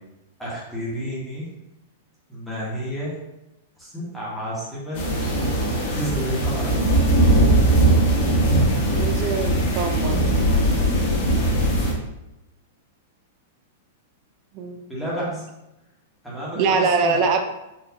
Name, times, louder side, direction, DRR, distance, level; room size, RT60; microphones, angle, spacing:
voice 1, 0.4-1.4 2.3-3.2 3.8-5.0 5.9-6.7 14.9-15.4 16.2-17.2, equal, ahead, -8 dB, 1.2 m, -30 dB
sound 1, 5.0-11.9, right 1 dB, 55° left, 1.2 m, -20 dB
voice 2, 8.9-10.2 14.5-14.8 16.6-17.4, right 4 dB, 40° right, 5 dB, 0.5 m, -23 dB
4.1 x 2.6 x 2.8 m, 0.93 s
hypercardioid pair, 145°, 0 cm